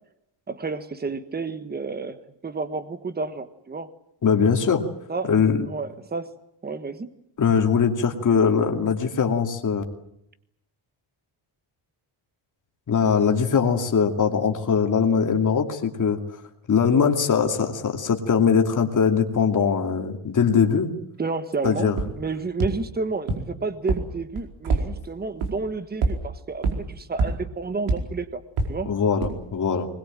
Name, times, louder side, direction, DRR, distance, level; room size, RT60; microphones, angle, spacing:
voice 1, 0.5-3.9 5.1-5.3 5.7-6.3 6.6-7.1 21.2-28.4 28.7-28.9, right 4 dB, 20° right, 12 dB, 1.3 m, -31 dB
voice 2, 4.2-4.8 5.3-5.6 7.4-9.8 12.9-16.2 16.7-20.9 21.6-22.0 28.8-29.9, left 6 dB, 35° left, 4 dB, 2.6 m, -21 dB
sound 1, 22.0-22.1 22.6-22.7 23.3-23.4 23.9-24.0 24.4-24.8 25.4-25.5 26.0-26.1 26.6-26.7 27.2-27.3 27.9-28.0 28.6-28.7 29.2-29.3, right 3 dB, 85° right, 4.9 m, -22 dB
21.5 x 20.5 x 9.1 m, 0.78 s
cardioid pair, 160°, 49 cm